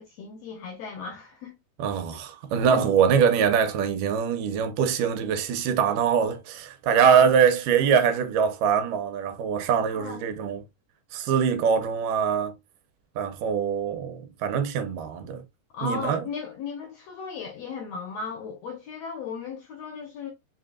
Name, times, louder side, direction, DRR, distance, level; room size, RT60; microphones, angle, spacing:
voice 1, 0.0-1.5 2.7-2.9 6.9-7.3 9.9-10.2 15.7-20.3, left 5 dB, 70° left, 1.6 m, -35 dB
voice 2, 1.8-10.6 11.1-12.5 13.2-15.4 15.8-16.2, right 7 dB, 85° right, 2.3 m, -23 dB
5.4 x 2.7 x 2.3 m
omnidirectional pair, 3.8 m